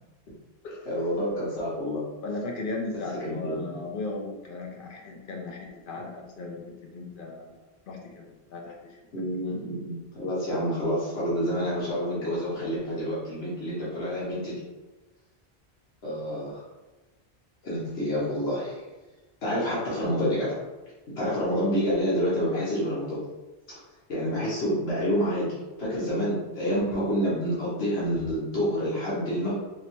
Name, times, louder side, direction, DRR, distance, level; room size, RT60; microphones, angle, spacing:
voice 1, 0.8-2.0 3.2-3.8 9.1-14.6 16.0-16.6 17.6-18.8 19.4-20.6 21.1-23.2 23.7-23.8 24.1-25.5 25.8-29.5, equal, 80° left, -8 dB, 1.3 m, -28 dB
voice 2, 2.2-7.6 7.9-8.2 8.5-9.0 13.8-13.9, left 3 dB, 55° left, 0 dB, 0.8 m, -36 dB
3.2 x 2.8 x 3.0 m, 1.1 s
omnidirectional pair, 1.1 m